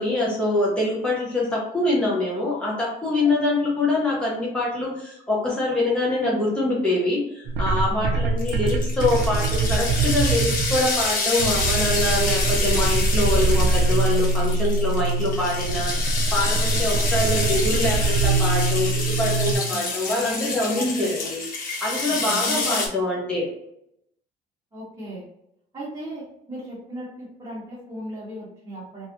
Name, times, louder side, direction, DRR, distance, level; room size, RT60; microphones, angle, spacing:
voice 1, 0.0-21.4 21.8-23.4, left 2 dB, 5° left, -6 dB, 1.0 m, -24 dB
sound 1, 7.5-11.1 11.4-19.6, right 2 dB, 75° right, 0.5 m, -23 dB
voice 2, 7.9-8.3 19.4-20.9 21.2-21.3 22.1-22.8 24.7-25.2 25.7-29.1, right 1 dB, 25° right, -8 dB, 1.2 m, -36 dB
sound 2, 8.4-22.9, left 3 dB, 55° left, 1.0 m, -28 dB
3.0 x 2.7 x 2.8 m, 0.78 s
cardioid pair, 110°, 17 cm